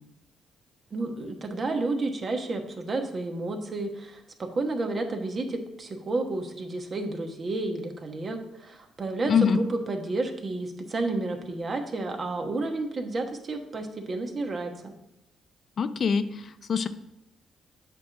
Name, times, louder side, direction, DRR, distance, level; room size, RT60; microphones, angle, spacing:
voice 1, 0.9-14.9, right 2 dB, 40° right, 4 dB, 1.2 m, -31 dB
voice 2, 9.3-9.6 15.8-16.9, left 6 dB, 50° left, 11 dB, 0.4 m, -24 dB
8.2 x 3.3 x 6.4 m, 0.84 s
cardioid pair, 90°, 0 cm